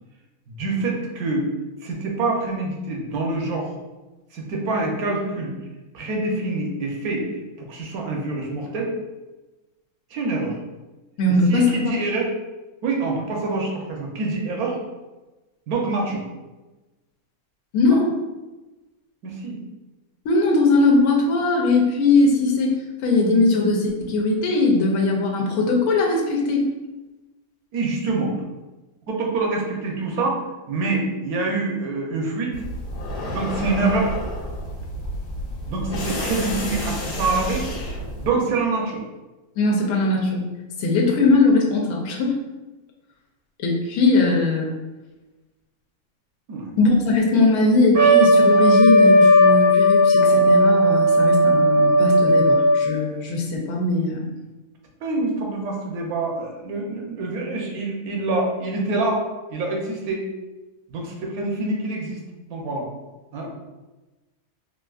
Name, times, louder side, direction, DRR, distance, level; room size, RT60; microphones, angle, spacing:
voice 1, 0.5-1.4 1.8-3.8 4.3-5.5 5.9-8.9 10.1-10.6 11.5-12.3 12.8-14.8 15.7-16.2 19.2-19.6 27.7-28.4 29.1-32.5 33.3-34.1 35.7-37.7 38.2-39.0 46.5-46.7 55.0-59.2 59.5-60.3 60.9-62.2 62.5-62.9 63.3-63.5, right 3 dB, 80° right, -1 dB, 1.2 m, -26 dB
voice 2, 11.2-11.9 17.7-18.1 20.2-22.8 23.0-26.6 39.6-40.5 40.8-42.4 43.6-44.7 46.8-54.3, left 3 dB, 85° left, -1 dB, 1.1 m, -20 dB
sound 1, 32.5-38.3, left 1 dB, 65° left, 0.9 m, -30 dB
Trumpet, 47.9-53.0, equal, 60° right, 0.6 m, -15 dB
3.5 x 2.5 x 2.3 m, 1.1 s
omnidirectional pair, 1.6 m